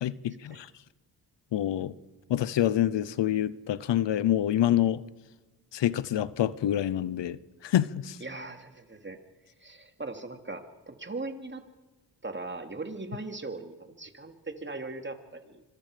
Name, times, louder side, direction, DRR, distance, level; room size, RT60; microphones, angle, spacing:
voice 1, 0.0-0.7 1.5-1.9 2.3-5.0 5.7-8.2, left 11 dB, 85° left, 0.8 m, -27 dB
voice 2, 8.2-9.2 9.6-11.6 12.2-15.6, right 3 dB, 25° right, 2.7 m, -39 dB
25.5 x 23.0 x 5.1 m
cardioid pair, 60°, 42 cm